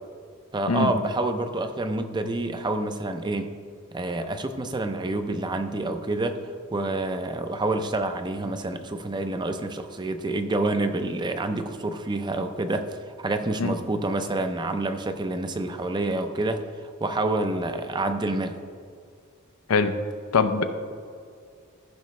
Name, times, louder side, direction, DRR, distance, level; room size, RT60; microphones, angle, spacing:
voice 1, 0.5-3.6 3.9-6.4 6.7-18.6, right 2 dB, 20° right, 7 dB, 0.5 m, -28 dB
voice 2, 20.3-20.7, left 4 dB, 80° left, 9 dB, 0.6 m, -22 dB
14.5 x 5.8 x 3.2 m, 2.3 s
head